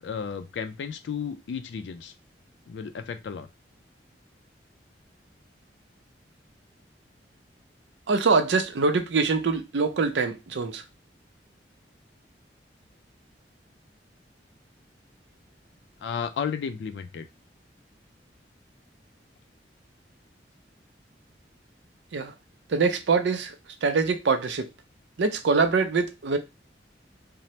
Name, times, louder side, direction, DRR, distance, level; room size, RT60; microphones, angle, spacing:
voice 1, 0.0-2.1 2.7-3.5 16.0-17.3, left 6 dB, 80° left, 0.3 m, -33 dB
voice 2, 8.1-10.8 22.1-22.3 22.7-23.5 23.8-24.7 25.2-26.4, right 4 dB, 80° right, 0.5 m, -24 dB
2.7 x 2.0 x 3.0 m
head